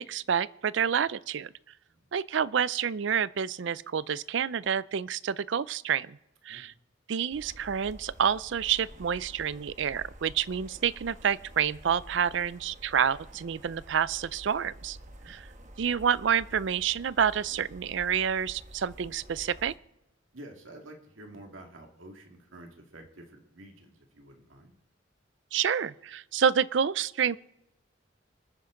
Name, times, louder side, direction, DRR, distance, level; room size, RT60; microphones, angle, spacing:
voice 1, 0.0-1.5 2.1-6.2 6.4-6.7 7.1-15.0 15.3-15.5 15.8-19.7 25.5-27.4, right 7 dB, 65° right, 19 dB, 0.4 m, -28 dB
sound 1, 7.3-19.8, right 1 dB, 40° right, 1.2 m, -49 dB
voice 2, 20.3-24.8, right 1 dB, 85° right, 3 dB, 2.2 m, -49 dB
26.5 x 9.5 x 3.8 m, 0.89 s
head